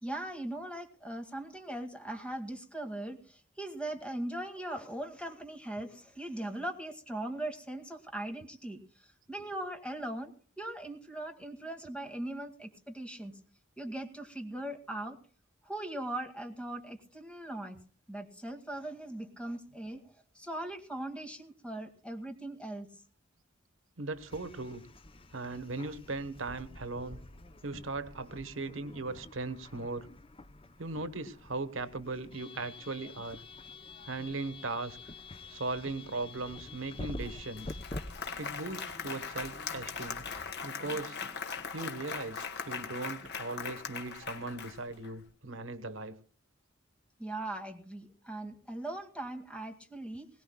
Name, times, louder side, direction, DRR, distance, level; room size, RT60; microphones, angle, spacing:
voice 1, 0.0-10.3 10.6-13.4 13.8-15.2 15.6-17.8 18.1-20.0 20.3-22.9 47.2-50.3, right 1 dB, 5° left, 4 dB, 2.1 m, -40 dB
voice 2, 24.0-24.8 25.3-27.2 27.6-30.1 30.8-33.4 34.0-35.0 35.5-37.8 38.4-40.2 40.6-41.2 41.7-46.2, right 3 dB, 80° right, 11 dB, 1.2 m, -38 dB
sound 1, 24.1-40.5, left 2 dB, 30° left, 0.7 m, -48 dB
Applause, 37.2-37.3 37.6-45.1, left 6 dB, 60° left, 1.6 m, -40 dB
21.5 x 18.5 x 2.3 m, 0.43 s
head